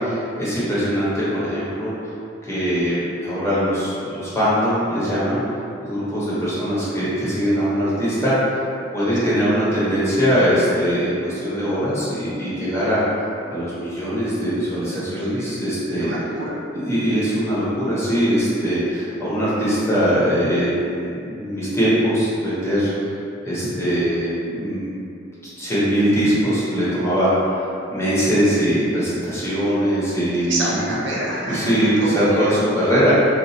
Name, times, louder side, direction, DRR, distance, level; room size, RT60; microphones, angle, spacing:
voice 1, 0.0-2.1 2.4-5.4 5.8-8.3 8.9-13.0 13.5-16.1 16.7-23.1 23.4-25.0 25.6-30.8 31.4-33.1, equal, 15° left, -11 dB, 0.8 m, -21 dB
voice 2, 9.2-9.5 15.2-15.6 15.9-16.6 30.4-32.6, right 1 dB, 65° right, -5 dB, 0.5 m, -27 dB
2.9 x 2.3 x 2.8 m, 2.5 s
head